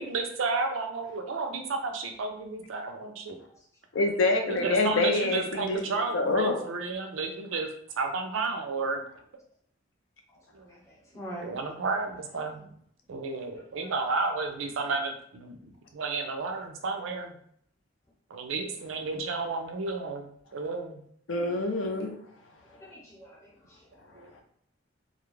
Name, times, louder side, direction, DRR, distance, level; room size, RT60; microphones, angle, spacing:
voice 1, 0.0-3.4 4.5-7.7 8.0-9.0 10.5-10.8 11.4-12.6 13.1-17.3 18.3-21.0 24.2-24.3, right 3 dB, 85° right, 5 dB, 0.4 m, -32 dB
voice 2, 3.9-5.8 6.1-6.6 21.3-22.1, left 2 dB, 75° left, 3 dB, 0.5 m, -26 dB
voice 3, 10.3-11.6 12.3-12.7 13.8-13.9 22.7-24.4, right 1 dB, 15° left, -4 dB, 0.7 m, -46 dB
2.3 x 2.0 x 3.0 m, 0.64 s
head